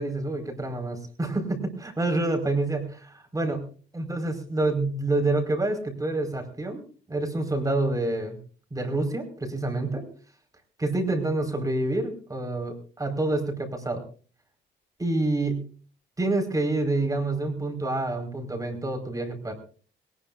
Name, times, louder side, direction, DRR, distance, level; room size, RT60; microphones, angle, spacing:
voice 1, 0.0-3.6 3.9-8.4 8.7-10.0 10.8-14.0 15.0-15.7 16.2-19.5, right 2 dB, 15° right, 4 dB, 4.9 m, -27 dB
21.5 x 19.5 x 2.6 m, 0.41 s
cardioid pair, 90°, 20 cm